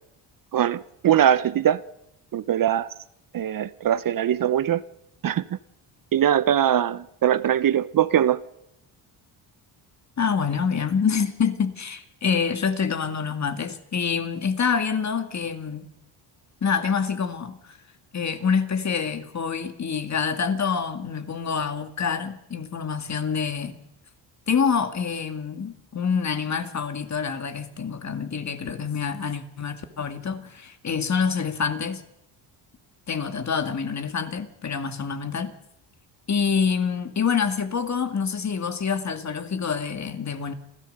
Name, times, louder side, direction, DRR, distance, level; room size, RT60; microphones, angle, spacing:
voice 1, 0.5-1.8 2.3-2.9 3.3-4.8 5.2-5.4 6.1-8.4, right 10 dB, 45° right, 0.7 m, -21 dB
voice 2, 10.2-15.9 16.6-17.8 18.1-23.8 24.5-32.0 33.1-35.5 36.3-40.5, left 6 dB, 35° left, 2.2 m, -26 dB
29.0 x 13.5 x 6.7 m
cardioid pair, 95°, 45 cm